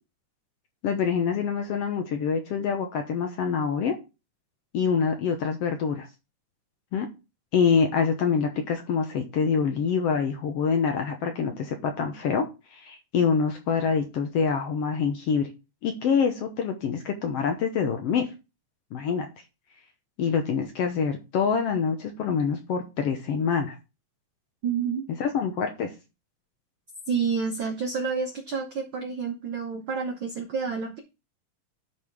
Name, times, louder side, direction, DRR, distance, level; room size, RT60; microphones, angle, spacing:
voice 1, 0.8-3.9 4.7-6.1 6.9-7.1 7.5-15.5 15.8-18.3 18.9-19.3 20.2-23.8 25.2-25.9, left 6 dB, 65° left, 5 dB, 1.6 m, -26 dB
voice 2, 24.6-25.0 27.1-31.0, right 6 dB, 70° right, 3 dB, 1.2 m, -29 dB
11.0 x 4.9 x 3.5 m, 0.28 s
omnidirectional pair, 3.6 m